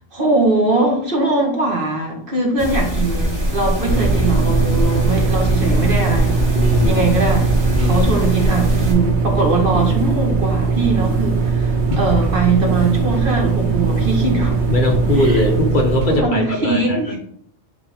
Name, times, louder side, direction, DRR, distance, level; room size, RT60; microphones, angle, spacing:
voice 1, 0.1-6.4 6.8-7.5 7.8-14.6 15.1-15.5 16.1-17.2, right 3 dB, 55° right, 1 dB, 1.6 m, -21 dB
sound 1, 2.6-8.9, equal, 25° right, 2.0 m, -21 dB
sound 2, 3.8-16.2, right 4 dB, 90° right, 1.3 m, -20 dB
voice 2, 6.6-7.0 7.7-8.1 14.7-17.2, left 2 dB, 50° left, 3 dB, 1.0 m, -20 dB
8.5 x 3.5 x 3.4 m, 0.63 s
omnidirectional pair, 1.1 m